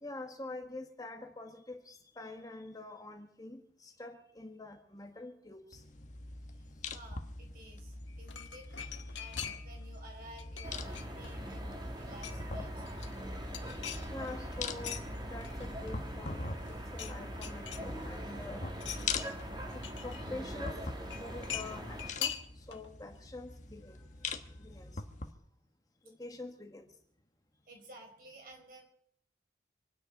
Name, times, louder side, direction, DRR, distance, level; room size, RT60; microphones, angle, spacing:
voice 1, 0.0-5.8 14.1-18.7 19.7-20.7 21.0-24.3 24.6-25.0 26.0-26.9, left 2 dB, 20° left, 4 dB, 1.4 m, -46 dB
sound 1, 5.7-25.3, left 3 dB, 40° left, 1.2 m, -43 dB
voice 2, 6.5-8.7 9.2-12.9 27.7-28.8, right 1 dB, 50° right, 2 dB, 4.8 m, -53 dB
sound 2, 8.1-9.9 10.1-11.5 11.9-12.6 12.9-15.0 15.4-16.3 16.6-17.1 17.4-18.3 18.7-20.2 21.1-22.9 23.1-23.2, left 9 dB, 90° left, 1.6 m, -43 dB
sound 3, 10.6-22.1, equal, 25° right, 2.3 m, -42 dB
26.0 x 10.0 x 5.2 m, 0.69 s
head